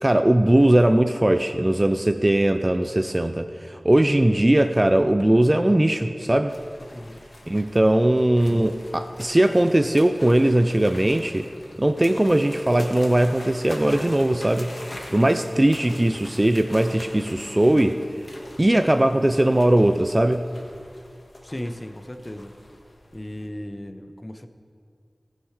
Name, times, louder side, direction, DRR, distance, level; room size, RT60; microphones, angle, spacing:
voice 1, 0.0-6.6 7.5-11.5 11.8-18.0 18.6-20.4, right 1 dB, 30° right, 8 dB, 0.4 m, -19 dB
sound 1, 6.5-23.5, left 1 dB, 70° left, 1.5 m, -43 dB
voice 2, 21.4-22.5 23.1-24.5, left 1 dB, 25° left, 8 dB, 0.6 m, -36 dB
18.5 x 6.4 x 3.2 m, 2.3 s
wide cardioid pair, 45°, 0 cm